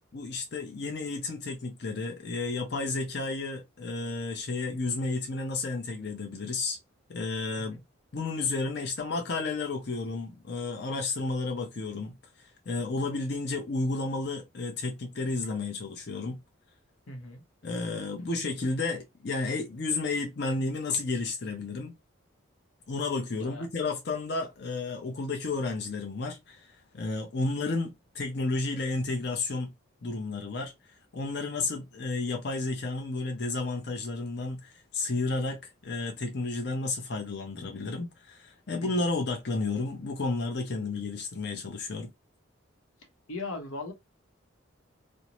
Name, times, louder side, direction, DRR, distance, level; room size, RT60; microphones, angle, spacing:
voice 1, 0.0-6.8 7.1-7.8 8.1-16.4 17.6-21.9 22.9-29.7 30.0-30.7 31.1-42.1, left 3 dB, 50° left, 0.6 m, -32 dB
voice 2, 17.1-17.4 23.4-23.7 38.8-39.0 43.3-43.9, left 3 dB, 85° left, 0.8 m, -38 dB
2.6 x 2.0 x 2.9 m
head